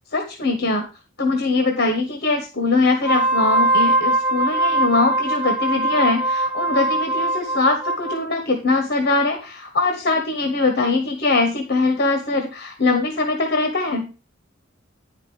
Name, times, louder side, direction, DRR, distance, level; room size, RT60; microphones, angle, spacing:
voice 1, 0.1-0.9 1.2-14.1, left 3 dB, 55° left, 5 dB, 1.2 m, -21 dB
Wind instrument woodwind instrument, 2.9-8.2, right 2 dB, 10° right, 0.7 m, -21 dB
9.9 x 5.2 x 5.4 m, 0.32 s
head